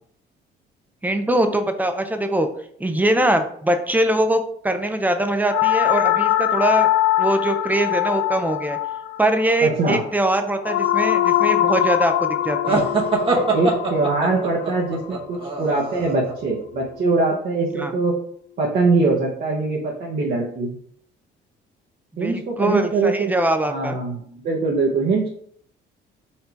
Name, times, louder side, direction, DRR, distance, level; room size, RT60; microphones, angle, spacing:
voice 1, 1.0-2.5 2.8-6.9 7.2-8.8 9.2-12.8 17.7-17.9 22.2-24.0, right 1 dB, 10° right, 6 dB, 0.5 m, -22 dB
sound 1, 5.5-15.7, left 13 dB, 90° left, 0.4 m, -22 dB
voice 2, 9.6-10.0 13.3-18.1 18.6-20.7 22.2-23.3 23.7-25.3, right 3 dB, 55° right, -3 dB, 1.0 m, -22 dB
sound 2, 12.6-16.3, right 3 dB, 30° right, 0.9 m, -23 dB
4.4 x 2.7 x 4.5 m, 0.62 s
cardioid pair, 140°, 19 cm